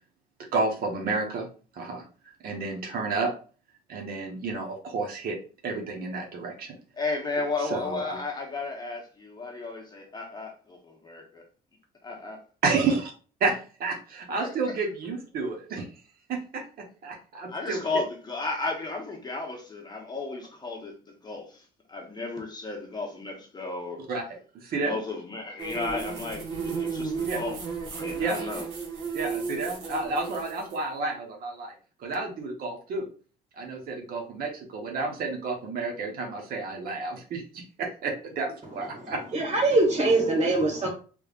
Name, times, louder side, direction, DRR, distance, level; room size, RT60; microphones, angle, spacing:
voice 1, 0.5-1.5 1.7-2.0 2.4-3.3 3.9-5.4 5.6-6.8 7.6-8.2 12.6-13.1 13.4-15.9 16.3-17.8 24.1-24.2 24.6-25.0 27.3-27.4 28.2-28.5 29.1-31.7 32.0-33.1 33.6-39.2, right 3 dB, 60° right, 1.0 m, -30 dB
voice 2, 7.0-11.4 12.0-12.4 14.4-14.7 17.5-20.9 21.2-24.0 24.8-27.6 27.9-28.7, left 3 dB, 25° left, 1.1 m, -34 dB
sound 1, 25.6-30.8, right 5 dB, 80° right, 1.3 m, -34 dB
voice 3, 38.9-40.9, right 2 dB, 40° right, 1.6 m, -23 dB
3.4 x 3.3 x 2.4 m
cardioid pair, 110°, 17 cm